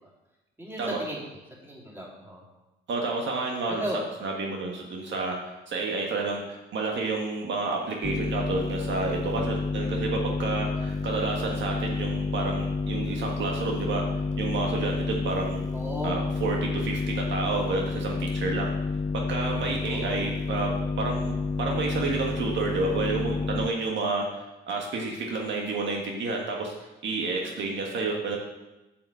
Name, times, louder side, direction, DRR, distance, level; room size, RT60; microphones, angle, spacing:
voice 1, 0.6-1.2 1.6-2.4 3.7-4.0 15.7-16.2 19.8-20.2, equal, 10° right, -5 dB, 3.5 m, -35 dB
voice 2, 2.9-3.8 4.2-5.4 5.7-14.0 14.4-15.6 16.0-18.7 19.1-20.7 21.0-28.4, right 3 dB, 65° right, 0 dB, 1.5 m, -30 dB
sound 1, 8.0-23.7, left 4 dB, 20° left, 0.4 m, -30 dB
7.1 x 5.9 x 7.6 m, 1.0 s
cardioid pair, 90°, 20 cm